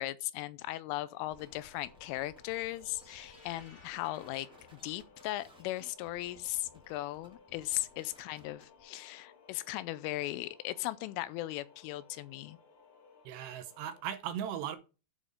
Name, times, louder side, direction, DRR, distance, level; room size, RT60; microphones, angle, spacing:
voice 1, 0.0-12.6, left 16 dB, 85° left, 3.1 m, -38 dB
sound 1, 1.0-14.0, left 5 dB, 65° left, 3.7 m, -61 dB
sound 2, 1.3-8.8, left 1 dB, ahead, 1.5 m, -61 dB
sound 3, 2.5-5.6, left 2 dB, 40° left, 1.0 m, -60 dB
voice 2, 13.3-14.8, right 9 dB, 75° right, 2.6 m, -38 dB
11.0 x 5.3 x 5.0 m
omnidirectional pair, 5.8 m